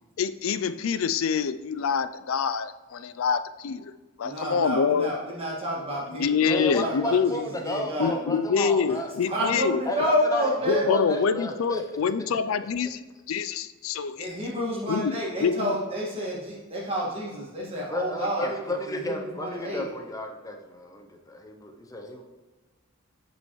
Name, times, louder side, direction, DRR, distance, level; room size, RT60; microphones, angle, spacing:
voice 1, 0.2-3.9 4.2-5.1 6.1-7.3 8.0-9.8 10.7-14.3 14.9-15.1 15.4-15.7, left 6 dB, 75° left, 13 dB, 0.4 m, -26 dB
voice 2, 4.2-8.1 9.2-10.9 14.2-19.9, equal, 25° right, -5 dB, 1.9 m, -30 dB
voice 3, 6.5-9.1 9.9-11.8 17.9-22.2, left 1 dB, 15° left, 4 dB, 0.7 m, -32 dB
9.4 x 5.4 x 3.1 m, 1.3 s
head